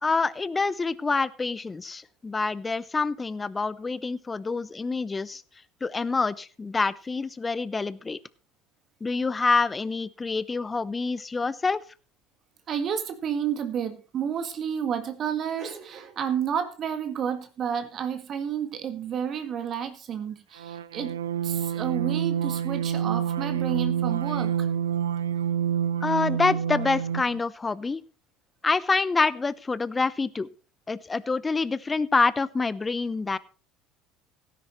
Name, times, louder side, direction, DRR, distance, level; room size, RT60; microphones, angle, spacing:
voice 1, 0.0-5.4 5.8-8.2 9.0-11.8 26.0-28.0 28.6-30.5 30.9-33.4, left 4 dB, 20° left, 18 dB, 0.8 m, -26 dB
voice 2, 12.7-21.2 21.4-24.7, right 8 dB, 45° right, 8 dB, 1.7 m, -31 dB
sound 1, 20.6-27.4, right 8 dB, 85° right, 0.5 m, -28 dB
17.0 x 10.5 x 3.2 m, 0.36 s
hypercardioid pair, 70°, 0 cm